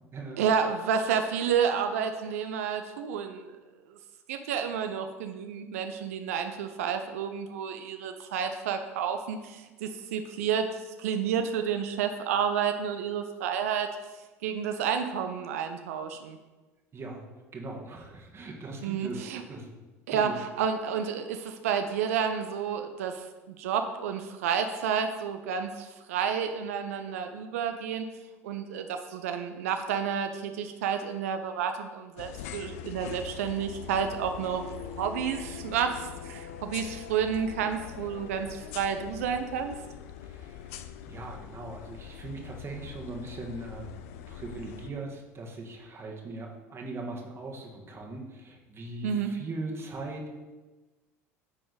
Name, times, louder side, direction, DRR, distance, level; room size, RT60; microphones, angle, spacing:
voice 1, 0.4-3.4 4.3-10.7 11.0-13.9 14.4-16.4 18.8-19.4 20.1-23.2 23.6-28.1 28.4-34.6 35.0-39.8 49.0-49.3, right 7 dB, 75° right, 7 dB, 0.5 m, -30 dB
voice 2, 16.9-17.3 17.5-19.8 20.1-20.4 40.2-40.7 41.1-43.9 44.3-50.3, right 2 dB, 30° right, 1 dB, 1.5 m, -40 dB
sound 1, 32.2-44.9, left 9 dB, 70° left, 0.5 m, -42 dB
9.7 x 3.8 x 4.0 m, 1.2 s
hypercardioid pair, 75°, 8 cm